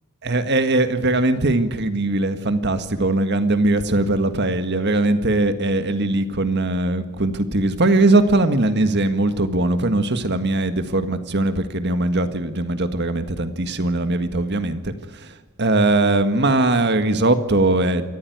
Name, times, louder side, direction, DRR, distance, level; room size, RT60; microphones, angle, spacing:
voice 1, 0.2-18.1, right 2 dB, 50° right, 9 dB, 1.7 m, -20 dB
27.0 x 14.5 x 9.4 m, 1.3 s
head